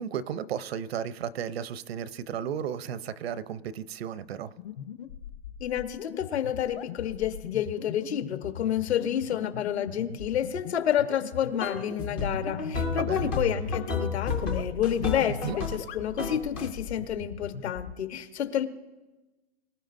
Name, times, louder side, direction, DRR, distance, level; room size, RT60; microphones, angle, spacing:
voice 1, 0.0-4.5 13.0-13.3 15.4-15.6, right 8 dB, 65° right, 15 dB, 0.8 m, -34 dB
sound 1, 4.6-17.9, left 9 dB, 60° left, 0.9 m, -40 dB
voice 2, 5.6-18.6, left 10 dB, 80° left, 7 dB, 1.4 m, -29 dB
sound 2, 11.6-15.9 16.2-16.7, left 4 dB, 10° left, 0.3 m, -32 dB
23.5 x 12.5 x 2.6 m, 1.1 s
hypercardioid pair, 160°, 32 cm